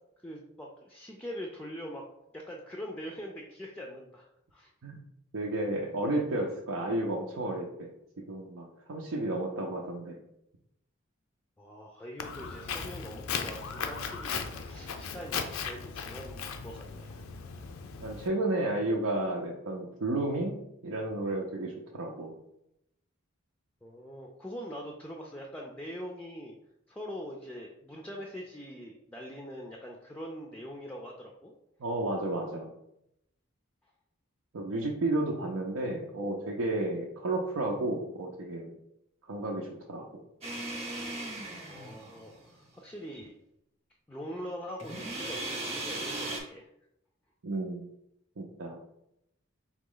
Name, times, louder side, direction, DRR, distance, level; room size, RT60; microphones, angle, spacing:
voice 1, 0.2-2.1 2.3-4.7 11.6-17.2 23.8-26.5 26.9-31.5 41.4-43.3 44.1-46.7, equal, 5° left, 0 dB, 0.4 m, -43 dB
voice 2, 5.3-7.9 8.2-10.2 18.0-20.6 20.8-22.4 31.8-32.7 34.5-38.7 39.3-40.1 47.4-47.9 48.4-48.8, right 2 dB, 85° right, -1 dB, 0.6 m, -32 dB
Walk footsteps, 12.2-18.3, left 6 dB, 85° left, 0.5 m, -37 dB
sound 1, 40.4-42.4 44.8-46.4, right 2 dB, 30° right, 0.9 m, -37 dB
4.0 x 3.0 x 3.8 m, 0.80 s
head